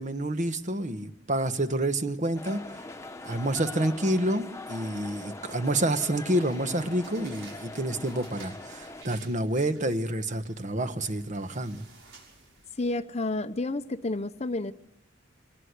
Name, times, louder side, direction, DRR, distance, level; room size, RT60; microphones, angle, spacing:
voice 1, 0.0-2.6 3.2-11.9, right 1 dB, 40° right, 9 dB, 1.2 m, -28 dB
sound 1, 2.3-9.0, left 2 dB, 15° left, 1.2 m, -42 dB
sound 2, 6.4-12.9, right 4 dB, 85° right, 6.3 m, -54 dB
voice 2, 12.8-14.7, left 2 dB, 35° left, 11 dB, 0.8 m, -30 dB
24.0 x 19.5 x 8.2 m, 0.85 s
head